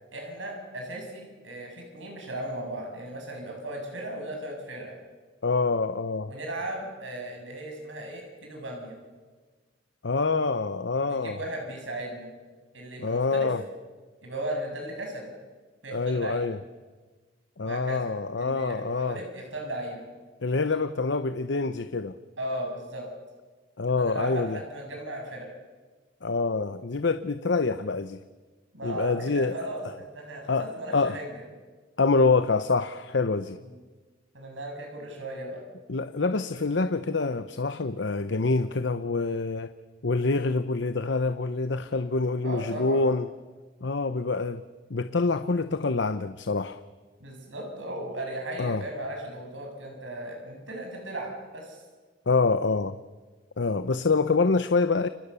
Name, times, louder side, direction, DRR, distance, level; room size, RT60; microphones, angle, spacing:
voice 1, 0.1-4.9 6.3-9.0 11.0-12.3 12.7-13.5 14.2-15.3 15.8-16.5 17.6-18.1 18.4-20.0 22.4-23.1 23.9-25.5 28.7-31.4 33.7-33.8 34.3-35.6 42.4-43.1 47.2-51.8, right 1 dB, 90° right, 1 dB, 7.6 m, -36 dB
voice 2, 5.4-6.3 10.0-11.4 13.0-13.6 15.9-16.6 17.6-19.2 20.4-22.1 23.8-24.6 26.2-28.2 28.8-29.6 30.5-30.7 30.9-31.2 32.0-33.6 35.9-39.7 40.0-43.3 43.8-44.6 44.9-46.8 48.6-48.8 52.3-53.0 53.6-55.1, left 3 dB, 70° left, 11 dB, 0.8 m, -26 dB
30.0 x 23.5 x 7.0 m, 1.4 s
head